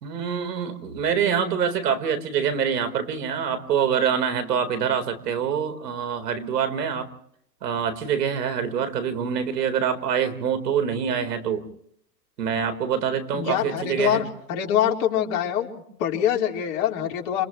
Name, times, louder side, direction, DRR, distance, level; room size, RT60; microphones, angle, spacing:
voice 1, 0.0-7.1 7.6-11.6 12.4-14.2, right 7 dB, 70° right, 10 dB, 4.2 m, -25 dB
voice 2, 13.3-15.7 16.0-17.4, left 10 dB, 50° left, 0 dB, 4.6 m, -24 dB
29.0 x 28.0 x 3.2 m, 0.69 s
hypercardioid pair, 120°, 49 cm